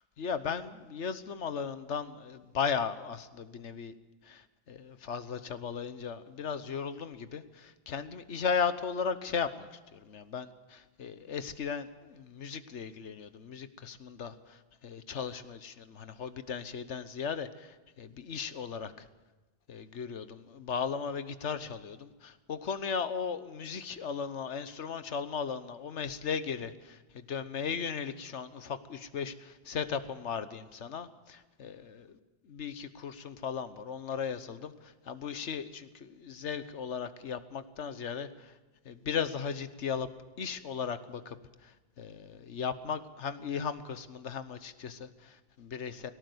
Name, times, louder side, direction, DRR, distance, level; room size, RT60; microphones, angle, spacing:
voice 1, 0.2-3.9 4.3-4.4 4.7-14.3 14.8-19.1 19.7-27.0 27.3-32.1 32.5-34.7 35.1-38.3 38.8-40.1 40.4-41.4 41.6-41.7 42.0-46.1, left 6 dB, 80° left, 12 dB, 1.3 m, -36 dB
18.5 x 17.5 x 7.9 m, 1.2 s
omnidirectional pair, 1.2 m